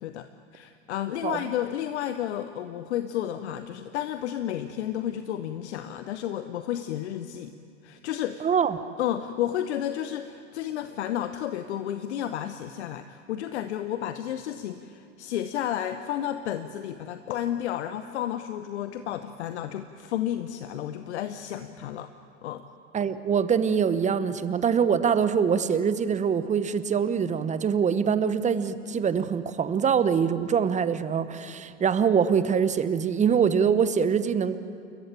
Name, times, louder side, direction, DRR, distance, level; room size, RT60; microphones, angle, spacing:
voice 1, 0.0-7.5 7.8-8.5 9.0-22.1 22.4-22.6, left 11 dB, 60° left, 10 dB, 1.0 m, -32 dB
voice 2, 8.4-8.8 22.9-34.6, right 7 dB, 20° right, 13 dB, 1.0 m, -24 dB
29.0 x 14.5 x 8.9 m, 2.4 s
figure-of-eight pair, 85°, 37 cm